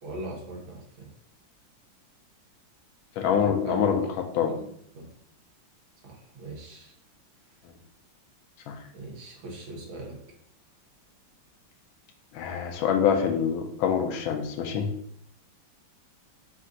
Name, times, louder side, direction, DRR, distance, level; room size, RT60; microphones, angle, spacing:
voice 1, 0.0-1.1 3.3-3.9 4.5-4.7 4.9-5.1 6.0-6.9 8.9-10.2, right 2 dB, 75° right, -3 dB, 1.9 m, -40 dB
voice 2, 3.2-4.1 4.3-4.5 8.7-8.8 12.3-14.9, left 7 dB, 90° left, 5 dB, 1.4 m, -25 dB
4.4 x 2.5 x 3.8 m, 0.69 s
omnidirectional pair, 2.2 m